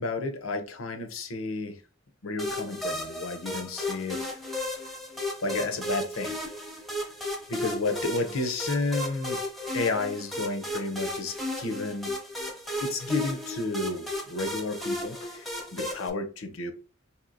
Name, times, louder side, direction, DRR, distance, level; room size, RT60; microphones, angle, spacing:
voice 1, 0.0-1.8 2.2-4.3 5.4-6.4 7.5-9.4 9.7-12.1 12.8-16.7, left 3 dB, 85° left, 6 dB, 0.7 m, -31 dB
sound 1, 2.4-16.1, left 1 dB, ahead, 0.7 m, -34 dB
4.3 x 2.7 x 2.6 m, 0.37 s
head